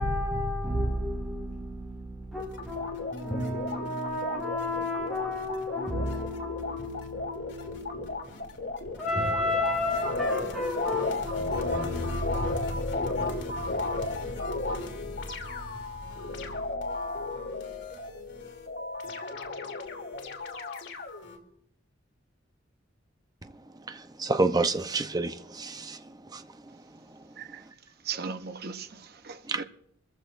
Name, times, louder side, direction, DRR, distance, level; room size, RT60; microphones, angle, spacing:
voice 1, 0.0-8.7 9.0-15.4, left 1 dB, ahead, 5.1 m, -32 dB
sound 1, 2.3-21.4, left 2 dB, 60° left, 2.9 m, -34 dB
voice 2, 23.9-26.8 27.1-27.2 29.5-29.6, right 3 dB, 20° right, 0.7 m, -30 dB
voice 3, 27.4-27.7 28.0-29.6, right 5 dB, 50° right, 0.8 m, -38 dB
25.5 x 14.5 x 2.5 m
head